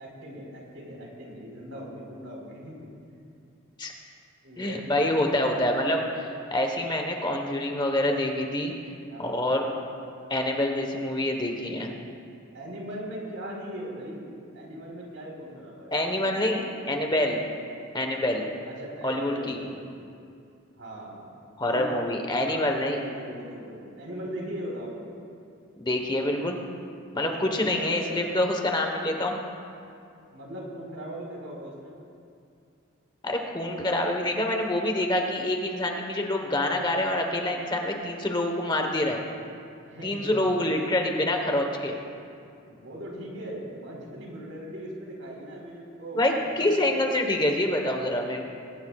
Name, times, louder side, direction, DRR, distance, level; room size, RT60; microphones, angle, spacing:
voice 1, 0.0-2.9 4.4-5.2 9.1-9.5 12.5-16.9 18.3-19.8 20.8-21.3 21.7-22.1 22.4-24.9 27.2-28.2 30.3-32.0 39.8-40.4 42.7-46.9, right 1 dB, 75° right, -2 dB, 4.3 m, -39 dB
voice 2, 4.6-8.7 9.2-9.7 10.3-11.9 15.9-16.6 16.9-17.4 17.9-18.4 19.0-19.6 21.6-23.0 25.8-26.6 27.1-29.4 33.2-39.2 40.0-41.9 46.1-48.5, left 1 dB, 20° left, 2 dB, 1.2 m, -26 dB
21.5 x 18.5 x 2.4 m, 2.4 s
head